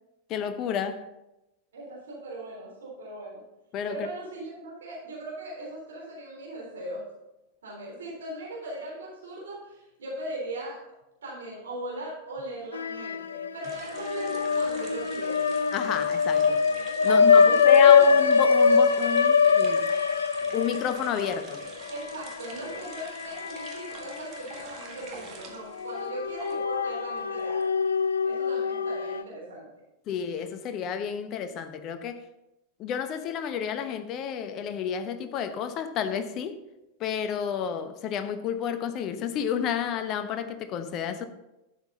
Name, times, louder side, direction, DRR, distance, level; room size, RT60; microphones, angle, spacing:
voice 1, 0.3-1.0 3.7-4.1 15.7-16.6 17.0-19.8 20.5-21.6 30.1-32.2 32.8-36.6 37.0-41.2, left 8 dB, 35° left, 0.9 m, -30 dB
voice 2, 1.7-3.4 3.9-7.0 7.6-10.8 11.2-15.4 17.0-18.0 21.9-27.6 28.2-29.6, right 1 dB, 65° right, 3.6 m, -39 dB
sound 1, 12.7-13.5 13.9-24.2 24.6-24.7 25.8-29.2, left 6 dB, 70° left, 0.4 m, -23 dB
sound 2, 13.6-26.8 27.1-28.3, right 5 dB, 35° right, 1.7 m, -46 dB
11.5 x 7.7 x 4.0 m
figure-of-eight pair, 90°, 0 cm